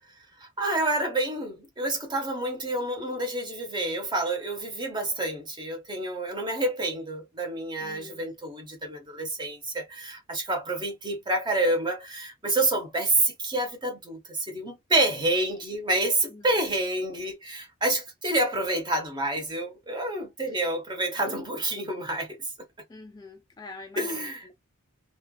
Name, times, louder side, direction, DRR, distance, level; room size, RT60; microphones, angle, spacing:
voice 1, 0.4-22.4 24.0-24.5, right 2 dB, 20° right, 0.9 m, -28 dB
voice 2, 7.8-8.2 16.3-16.6 22.9-24.5, left 3 dB, 20° left, 0.3 m, -45 dB
3.2 x 2.4 x 2.2 m
head